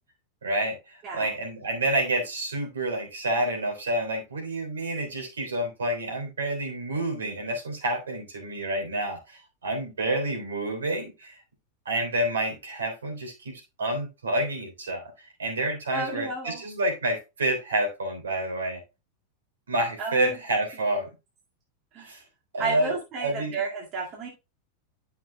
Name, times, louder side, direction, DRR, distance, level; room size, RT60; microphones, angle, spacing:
voice 1, 0.4-11.4 11.9-18.8 19.7-21.1 22.0-22.2 22.5-23.6, right 1 dB, 70° right, 2 dB, 3.4 m, -29 dB
voice 2, 15.9-16.6 20.0-20.4 21.9-22.1 22.6-24.3, right 3 dB, 35° right, -1 dB, 2.0 m, -32 dB
12.0 x 5.9 x 2.2 m, 0.26 s
figure-of-eight pair, 90°, 0 cm